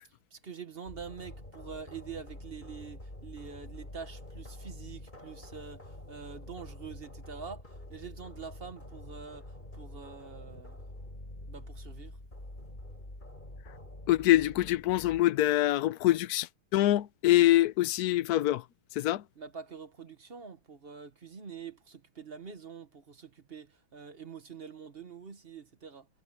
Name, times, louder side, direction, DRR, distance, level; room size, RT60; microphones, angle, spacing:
voice 1, 0.3-10.8 11.4-12.2 19.4-26.1, right 6 dB, 35° right, 1.0 m, -45 dB
sound 1, 0.8-15.2, left 1 dB, 20° left, 5.5 m, -47 dB
voice 2, 14.1-18.6 18.9-19.2, left 15 dB, 70° left, 0.9 m, -25 dB
omnidirectional pair, 2.3 m